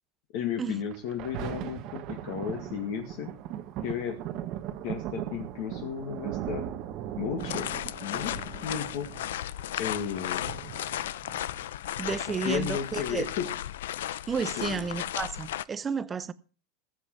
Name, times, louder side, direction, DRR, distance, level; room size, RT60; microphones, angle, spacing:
voice 1, 0.3-3.3 3.8-4.2 4.8-6.7 7.2-7.7 8.0-9.1 9.8-10.4 12.1-13.5 14.6-14.9, left 8 dB, 45° left, 2.1 m, -34 dB
Thunder, 0.9-11.9 12.5-12.6, right 11 dB, 35° right, 1.3 m, -38 dB
sound 1, 7.4-15.6, left 12 dB, 85° left, 0.7 m, -35 dB
voice 2, 12.0-13.3 14.3-16.3, right 6 dB, 15° right, 0.6 m, -32 dB
19.5 x 7.7 x 4.7 m
supercardioid pair, 180°, 0 cm